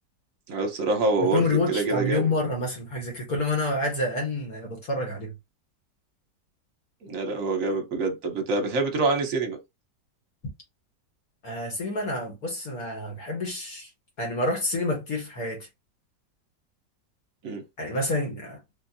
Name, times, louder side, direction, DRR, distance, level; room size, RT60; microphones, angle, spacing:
voice 1, 0.5-2.3 7.0-9.6 17.4-17.6, right 3 dB, 55° right, 1.1 m, -26 dB
voice 2, 1.2-5.3 11.4-13.9 14.2-15.7 17.8-18.6, left 2 dB, 55° left, 1.5 m, -28 dB
3.5 x 2.6 x 2.7 m
omnidirectional pair, 1.9 m